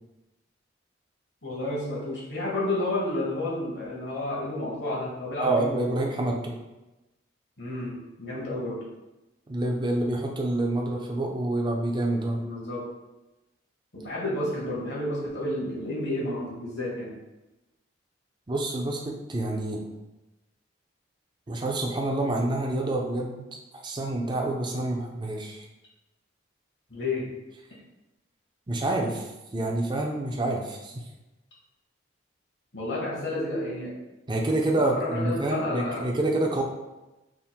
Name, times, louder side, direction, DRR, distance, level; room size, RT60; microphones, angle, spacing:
voice 1, 1.4-6.0 7.6-8.8 12.4-12.8 13.9-17.2 26.9-27.3 32.7-33.9 34.8-36.1, left 1 dB, 65° left, -5 dB, 1.3 m, -31 dB
voice 2, 5.4-6.5 9.5-12.4 18.5-19.8 21.5-23.5 23.7-25.6 28.7-29.3 29.5-30.9 34.3-36.6, right 2 dB, 25° right, 1 dB, 0.5 m, -27 dB
3.6 x 2.1 x 4.3 m, 1.0 s
head